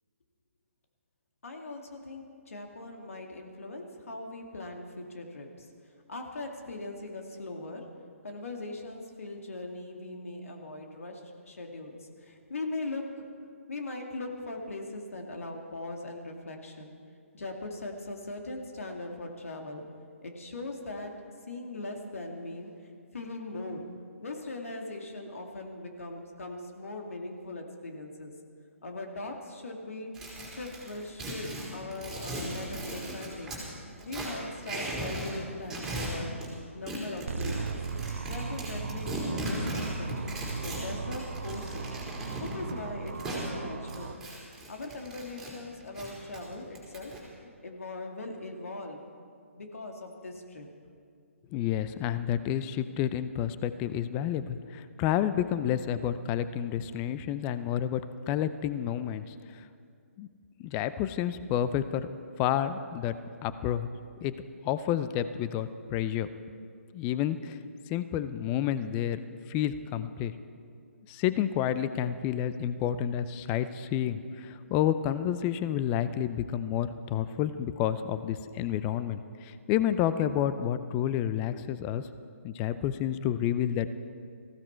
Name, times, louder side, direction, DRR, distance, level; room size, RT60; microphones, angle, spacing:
voice 1, 1.4-5.7 6.1-13.3 13.7-17.0 17.3-19.8 20.2-21.2 21.5-22.7 23.1-23.9 24.2-28.3 28.8-30.1 30.5-33.6 34.0-36.4 36.7-37.8 38.2-40.2 40.6-41.8 42.4-44.2 44.7-47.1 47.6-49.0 49.5-50.7, left 2 dB, 70° left, 2 dB, 2.2 m, -40 dB
sound 1, 30.1-33.6 34.0-35.3 35.6-36.5 36.9-43.4 43.9-45.5 45.8-47.2, right 1 dB, 5° right, 3.9 m, -37 dB
sound 2, 37.3-44.1, right 4 dB, 60° right, 1.1 m, -37 dB
voice 2, 51.5-58.0 58.3-59.6 60.2-60.3 60.6-62.1 62.4-63.1 63.4-63.9 64.2-64.3 64.6-66.3 66.9-67.6 67.9-69.2 69.5-70.3 71.1-82.0 82.4-83.9, left 10 dB, 20° left, 13 dB, 0.5 m, -30 dB
19.0 x 15.5 x 4.5 m, 2.3 s
figure-of-eight pair, 145°, 8 cm